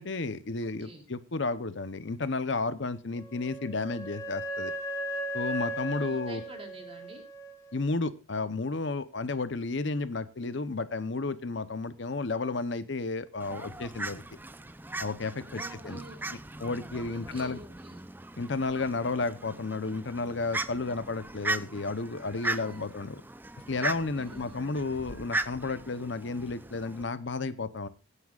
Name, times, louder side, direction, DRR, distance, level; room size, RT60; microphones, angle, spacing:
voice 1, 0.0-4.7 5.3-6.4 7.7-14.2 15.0-16.0 16.6-17.6 18.4-23.2 23.7-27.9, left 3 dB, 60° left, 13 dB, 0.8 m, -32 dB
voice 2, 0.6-1.0 5.9-7.2 15.4-16.3 17.1-18.0 22.5-22.9 24.1-24.7, right 1 dB, 30° right, 3 dB, 3.2 m, -48 dB
Wind instrument woodwind instrument, 3.1-7.8, right 1 dB, 15° left, 1.6 m, -37 dB
Fowl, 13.4-27.0, right 2 dB, 10° right, 0.5 m, -38 dB
23.0 x 9.9 x 2.4 m, 0.28 s
head